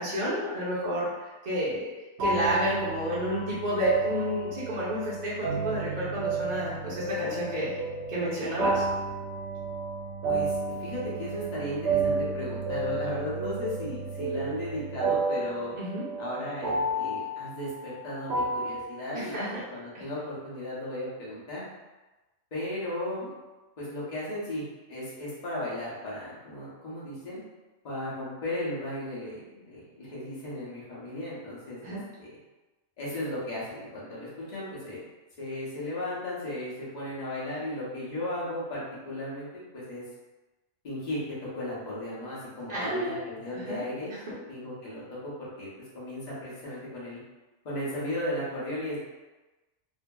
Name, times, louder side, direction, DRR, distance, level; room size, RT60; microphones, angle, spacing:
voice 1, 0.0-1.9 2.2-7.8 8.1-8.8 15.8-16.0 19.1-19.5 31.8-32.0 42.7-43.2 43.7-43.8, equal, 45° right, -9 dB, 0.7 m, -30 dB
sound 1, 2.2-18.8, right 3 dB, 70° right, 0.9 m, -31 dB
voice 2, 10.2-15.7 16.2-19.4 19.7-21.6 22.5-23.3 23.8-24.6 24.9-27.4 27.8-32.4 33.0-35.0 35.4-40.0 40.8-41.2 41.5-44.1 44.5-45.7 45.9-47.2 47.6-49.0, left 1 dB, 40° left, -8 dB, 0.9 m, -36 dB
2.7 x 2.6 x 2.2 m, 1.1 s
omnidirectional pair, 1.2 m